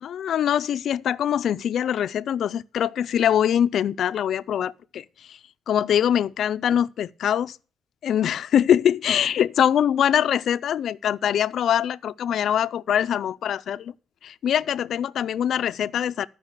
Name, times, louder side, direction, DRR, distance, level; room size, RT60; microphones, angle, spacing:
voice 1, 0.0-5.4 5.7-7.6 8.0-13.9 14.2-16.3, left 9 dB, 70° left, 0.4 m, -23 dB
13.0 x 5.3 x 6.5 m
cardioid pair, 100°, 0 cm